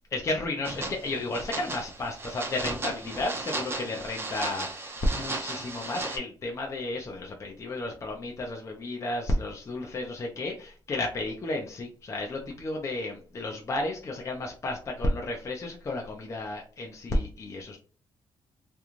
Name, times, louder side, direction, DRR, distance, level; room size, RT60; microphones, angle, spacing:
voice 1, 0.1-17.8, left 2 dB, 35° left, 0 dB, 0.5 m, -32 dB
sound 1, 0.6-6.2, right 2 dB, 25° right, 0.5 m, -35 dB
2.5 x 2.3 x 3.0 m, 0.38 s
cardioid pair, 115°, 9 cm